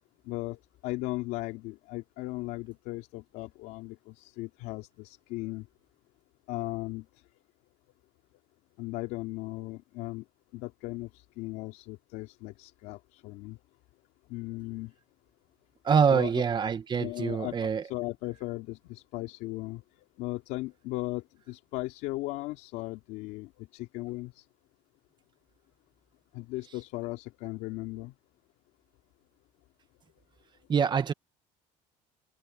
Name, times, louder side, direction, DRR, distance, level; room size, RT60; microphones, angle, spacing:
voice 1, 0.3-5.7 6.5-7.1 8.8-10.2 10.5-13.6 14.3-14.9 16.1-16.4 17.0-19.8 20.2-24.4 26.3-28.1, left 19 dB, 80° left, 2.8 m, -37 dB
voice 2, 15.8-17.8 30.7-31.1, right 6 dB, 30° right, 1.4 m, -25 dB
cardioid pair, 115°, 15 cm